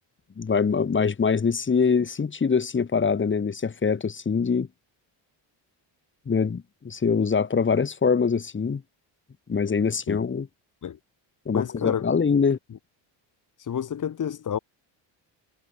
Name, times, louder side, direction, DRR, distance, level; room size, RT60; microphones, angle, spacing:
voice 1, 0.4-4.7 6.3-8.8 9.5-10.5 11.5-12.6, left 5 dB, 25° left, 5.2 m, -23 dB
voice 2, 11.5-12.1 13.6-14.6, left 8 dB, 40° left, 7.4 m, -29 dB
cardioid pair, 155°, 46 cm